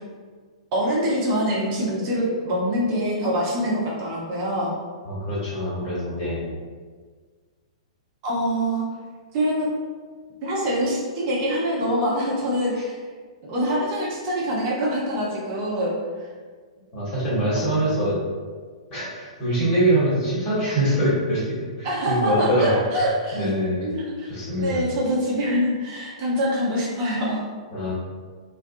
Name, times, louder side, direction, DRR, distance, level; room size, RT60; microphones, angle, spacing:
voice 1, 0.7-4.8 8.2-8.8 9.3-9.7 10.4-13.0 13.4-15.9 17.5-17.8 21.8-23.5 23.8-27.4, equal, 40° right, -5 dB, 0.6 m, -25 dB
voice 2, 5.1-6.5 12.7-12.8 16.9-18.2 18.9-22.7 23.3-23.9 24.3-24.8 27.7-27.9, right 1 dB, 35° left, -8 dB, 1.2 m, -24 dB
2.3 x 2.3 x 2.5 m, 1.6 s
figure-of-eight pair, 110°, 3 cm